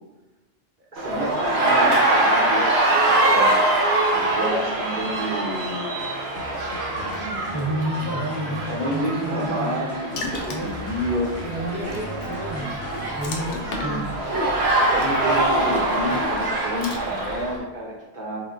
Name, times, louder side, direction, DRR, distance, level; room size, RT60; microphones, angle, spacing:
voice 1, 0.9-3.6 4.1-6.1 6.9-7.4 8.7-11.8 13.4-14.1 14.8-18.4, right 1 dB, 50° right, -4 dB, 1.0 m, -30 dB
sound 1, 1.0-17.5, right 2 dB, 75° right, 1.0 m, -24 dB
sound 2, 6.0-14.1, equal, 80° left, 1.6 m, -39 dB
voice 2, 7.5-9.9 10.5-10.7 11.4-12.9 13.2-14.2, right 1 dB, 15° left, -6 dB, 0.6 m, -30 dB
Water / Splash splatter, 10.2-17.6, left 2 dB, 65° left, 0.8 m, -39 dB
6.7 x 2.4 x 2.5 m, 1.1 s
omnidirectional pair, 1.1 m